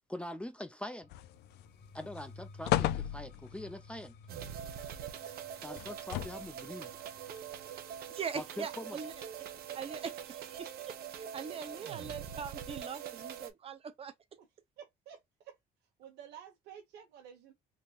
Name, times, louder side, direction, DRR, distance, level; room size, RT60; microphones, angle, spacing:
voice 1, 0.1-1.1 1.9-4.1 5.6-6.9 8.3-9.0, left 1 dB, 5° left, 0.5 m, -43 dB
sound 1, 1.0-10.8, left 3 dB, 65° left, 1.9 m, -56 dB
sound 2, 1.1-1.6 2.0-2.2 2.6-3.7 5.8-6.6 7.4-7.5, left 14 dB, 80° left, 0.4 m, -33 dB
sound 3, 4.3-13.5, right 9 dB, 65° right, 0.9 m, -44 dB
voice 2, 8.1-9.1 9.7-14.1, right 6 dB, 35° right, 0.7 m, -42 dB
voice 3, 14.8-15.6 16.0-17.5, right 9 dB, 80° right, 1.2 m, -52 dB
3.8 x 2.8 x 2.4 m
cardioid pair, 110°, 17 cm